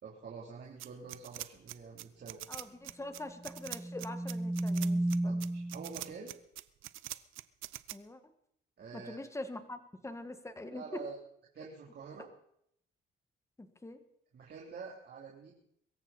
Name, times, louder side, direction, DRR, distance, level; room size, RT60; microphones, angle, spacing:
voice 1, 0.0-2.4 5.2-6.3 8.8-9.2 10.7-11.2 11.5-12.3 14.3-15.5, right 5 dB, 55° right, -3 dB, 3.6 m, -47 dB
sound 1, 0.8-7.9, right 16 dB, 90° right, 0.7 m, -43 dB
voice 2, 2.5-5.4 7.9-8.2 8.9-11.0 13.6-14.0, left 2 dB, 15° left, 8 dB, 1.9 m, -44 dB
sound 2, 3.5-6.0, right 1 dB, 5° right, 0.9 m, -33 dB
23.0 x 14.0 x 4.3 m, 0.73 s
cardioid pair, 90°, 20 cm